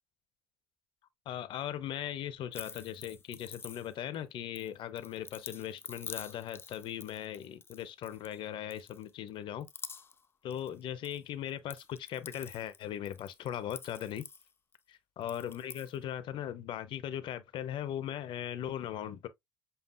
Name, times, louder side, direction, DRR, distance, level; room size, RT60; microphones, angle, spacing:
voice 1, 1.3-9.7 10.4-14.3 15.2-19.3, left 10 dB, 55° left, 0.8 m, -39 dB
sound 1, 2.5-4.2 4.6-8.4 8.7-9.3 9.6-10.3 10.5-11.2 11.5-14.8 15.2-16.0, left 5 dB, 25° left, 0.5 m, -48 dB
7.3 x 2.6 x 2.3 m
hypercardioid pair, 65°, 10 cm